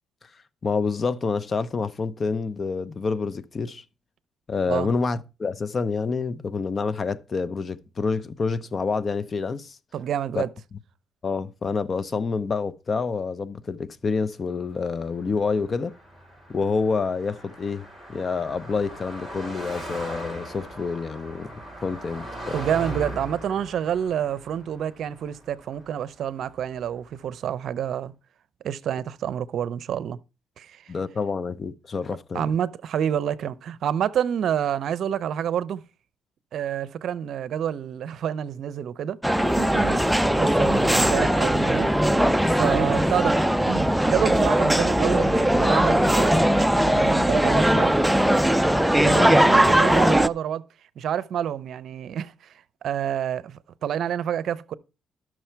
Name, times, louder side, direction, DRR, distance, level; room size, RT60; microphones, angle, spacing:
voice 1, 0.6-3.8 4.5-9.8 10.3-10.4 11.2-15.9 16.5-21.5 21.8-22.5 30.9-32.5 49.1-49.3, left 4 dB, 40° left, 0.7 m, -28 dB
voice 2, 9.9-10.5 22.5-28.1 28.6-30.2 30.6-30.9 32.3-35.8 36.5-39.2 39.6-40.1 40.4-43.4 43.6-46.5 46.8-48.0 49.0-50.6 51.0-54.7, right 9 dB, 70° right, 0.6 m, -28 dB
Car passing by, 15.1-26.6, right 1 dB, 20° left, 7.0 m, -39 dB
sound 1, 39.2-50.3, right 1 dB, 5° right, 0.5 m, -20 dB
12.5 x 6.2 x 4.5 m
cardioid pair, 90°, 0 cm